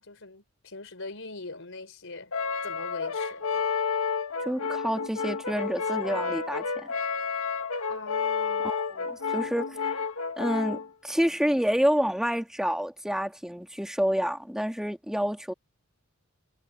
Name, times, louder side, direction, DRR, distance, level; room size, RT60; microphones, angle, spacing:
voice 1, 0.0-3.7 7.9-8.8, left 3 dB, 65° left, 5.3 m, -42 dB
Brass instrument, 2.3-10.9, left 5 dB, 90° left, 1.9 m, -30 dB
voice 2, 4.4-6.9 8.6-10.0 10.4-15.5, equal, 5° right, 1.9 m, -28 dB
head